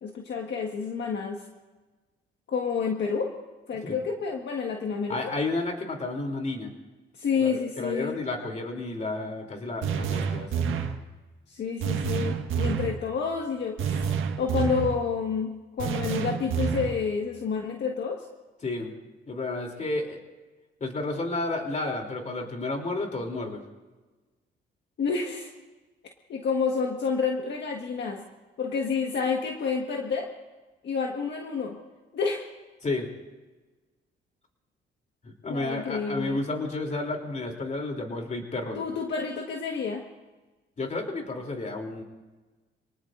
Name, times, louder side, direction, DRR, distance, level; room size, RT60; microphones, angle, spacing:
voice 1, 0.0-1.4 2.5-3.4 3.7-5.3 7.1-8.2 11.5-14.1 14.4-15.5 15.8-18.3 25.0-25.5 26.3-28.2 28.6-30.3 30.8-31.8 32.1-32.5 35.4-36.4 38.7-40.0, left 5 dB, 60° left, 1 dB, 1.6 m, -29 dB
voice 2, 5.1-6.7 7.4-10.6 18.6-18.9 19.3-20.2 20.8-23.6 32.8-33.1 35.2-38.8 40.8-42.0, left 2 dB, 35° left, 2 dB, 3.2 m, -31 dB
sound 1, 9.8-11.0 11.8-13.0 13.8-15.0 15.8-17.0, right 6 dB, 85° right, 1.6 m, -28 dB
27.0 x 19.0 x 2.6 m, 1.2 s
cardioid pair, 90°, 20 cm